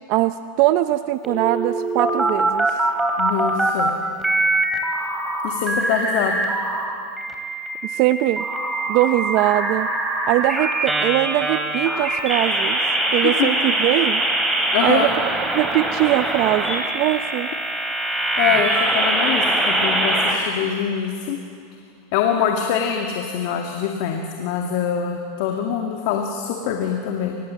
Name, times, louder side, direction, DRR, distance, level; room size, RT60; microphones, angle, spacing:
voice 1, 0.1-2.8 7.8-8.4 8.9-9.9 10.3-12.8 13.1-14.2 14.6-15.1 15.5-17.5 18.6-18.7, right 16 dB, 55° right, 11 dB, 0.6 m, -21 dB
sound 1, 1.2-3.9 4.2-6.8 7.2-20.3, right 2 dB, 10° right, 3.6 m, -22 dB
voice 2, 3.2-3.9 5.4-6.4 14.7-15.1 18.4-21.4 22.1-27.4, left 8 dB, 65° left, 2 dB, 2.1 m, -24 dB
24.0 x 20.5 x 7.6 m, 2.4 s
supercardioid pair, 125°, 0 cm